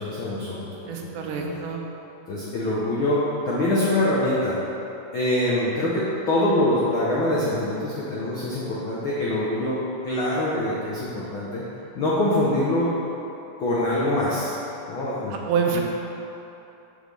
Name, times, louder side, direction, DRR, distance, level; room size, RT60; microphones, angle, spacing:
voice 1, 0.0-0.7 1.0-1.7 2.3-4.6 5.1-11.6 11.9-12.9 13.6-14.5 14.9-15.3 15.7-15.8, left 1 dB, 85° left, -7 dB, 1.1 m, -24 dB
voice 2, 0.9-1.8 15.3-15.8, right 6 dB, 80° right, 1 dB, 2.2 m, -26 dB
5.7 x 5.2 x 6.6 m, 2.9 s
omnidirectional pair, 3.8 m